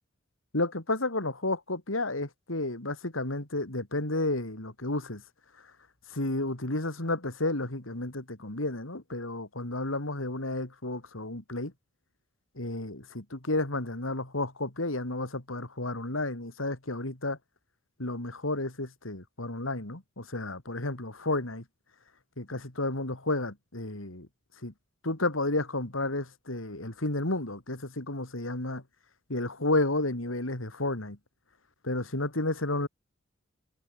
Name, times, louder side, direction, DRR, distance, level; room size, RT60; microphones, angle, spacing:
voice 1, 0.5-5.2 6.1-11.7 12.6-17.4 18.0-21.6 22.4-24.3 24.6-24.7 25.0-28.8 29.3-31.2 31.8-32.9, left 2 dB, 85° left, 3.5 m, -31 dB
head